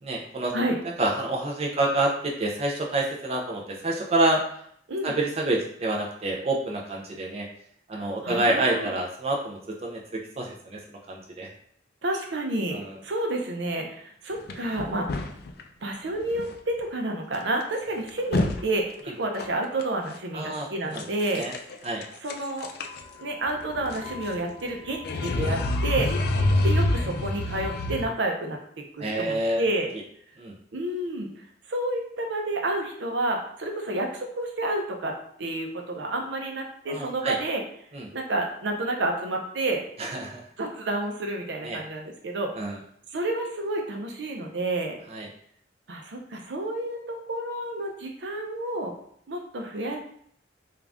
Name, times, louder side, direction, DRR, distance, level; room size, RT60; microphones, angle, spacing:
voice 1, 0.0-0.5 0.8-4.4 5.0-7.5 7.9-11.5 12.7-13.0 20.3-21.0 21.4-21.5 21.8-22.0 29.0-29.6 30.4-30.5 36.9-37.4 37.9-38.1 40.0-40.4 41.6-41.8 42.5-42.8 45.1-45.3, right 2 dB, 35° right, -1 dB, 0.5 m, -28 dB
voice 2, 7.9-8.9 12.0-15.2 15.8-21.5 22.2-22.7 23.2-26.1 26.6-29.9 30.7-31.3 31.7-37.6 38.1-39.8 40.6-42.5 43.1-44.9 45.9-48.9 49.3-50.0, right 1 dB, 75° right, 2 dB, 0.6 m, -30 dB
sound 1, 14.5-15.6 16.3-16.5 16.8-16.9 17.3-17.4 17.8-18.6 18.9-19.0 19.4-19.8 20.9-21.8 22.0-28.1, left 2 dB, 60° left, 0.4 m, -28 dB
3.7 x 2.4 x 3.4 m, 0.65 s
head